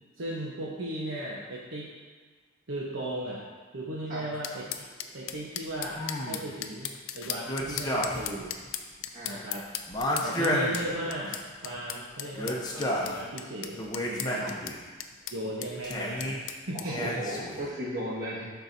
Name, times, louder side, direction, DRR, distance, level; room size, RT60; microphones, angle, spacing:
voice 1, 0.2-1.9 2.7-3.4 3.7-4.8 5.1-8.6 9.3-9.7 10.2-13.8 14.1-14.5 15.3-17.1, right 1 dB, 70° right, -5 dB, 1.0 m, -36 dB
sound 1, 4.4-16.9, left 10 dB, 80° left, 0.5 m, -38 dB
sound 2, 5.9-6.5 7.5-8.4 8.7-8.8 9.9-11.4 12.3-13.2 13.7-14.8 15.8-16.4 16.9-17.7, left 1 dB, 20° left, 0.7 m, -31 dB
voice 2, 9.1-9.5 14.4-14.6 16.7-18.5, equal, 40° right, -7 dB, 1.7 m, -35 dB
11.5 x 4.6 x 2.7 m, 1.4 s
head